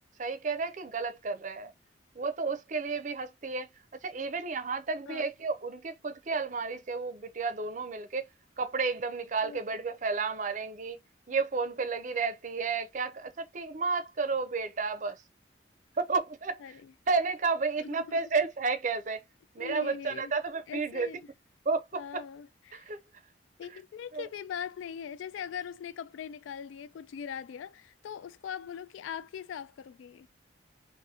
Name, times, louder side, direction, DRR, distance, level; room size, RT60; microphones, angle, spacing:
voice 1, 0.2-1.7 2.1-3.7 4.0-8.3 8.6-11.0 11.3-15.2 15.9-16.8 17.1-19.2 19.5-21.1 21.7-22.2 22.7-23.0 23.7-23.8 24.1-24.3, right 4 dB, 40° right, 0.5 m, -32 dB
voice 2, 16.6-16.9 17.8-18.2 19.6-20.3 20.7-21.2 21.9-23.0 23.6-30.3, left 8 dB, 90° left, 0.3 m, -41 dB
2.8 x 2.5 x 3.6 m
head